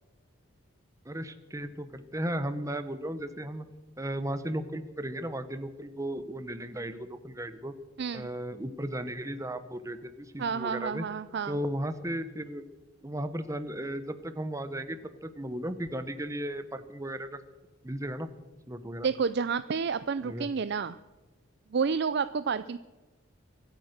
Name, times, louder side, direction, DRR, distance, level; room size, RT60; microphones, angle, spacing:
voice 1, 1.0-3.6 4.0-7.7 8.1-11.0 11.5-12.6 13.0-17.4 17.8-18.3 18.7-19.1 20.2-20.5, right 1 dB, 15° right, 11 dB, 0.9 m, -35 dB
voice 2, 8.0-8.3 10.4-11.6 19.0-21.0 21.7-22.8, right 5 dB, 50° right, 13 dB, 0.4 m, -30 dB
24.0 x 8.9 x 6.6 m, 1.2 s
head